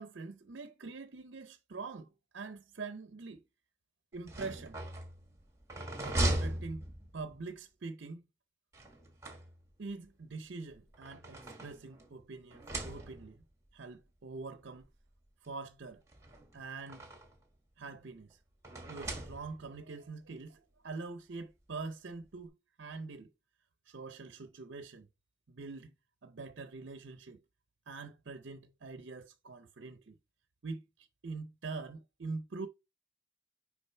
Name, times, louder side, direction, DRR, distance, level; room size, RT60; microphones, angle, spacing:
voice 1, 0.0-3.4 4.1-4.8 6.0-6.8 7.1-8.2 9.8-13.4 13.7-14.9 15.4-16.0 16.5-17.1 17.8-18.4 18.9-22.5 22.8-23.3 23.9-25.1 25.5-25.9 26.2-27.4 27.9-30.2 30.6-32.7, right 3 dB, 60° right, 0.6 m, -44 dB
sound 1, 4.1-7.4 8.7-9.9 10.7-12.1 12.5-13.4 14.4-14.5 14.8-14.9 16.1-17.4 18.6-19.8, right 1 dB, 15° right, 1.4 m, -38 dB
6.5 x 4.9 x 4.3 m
head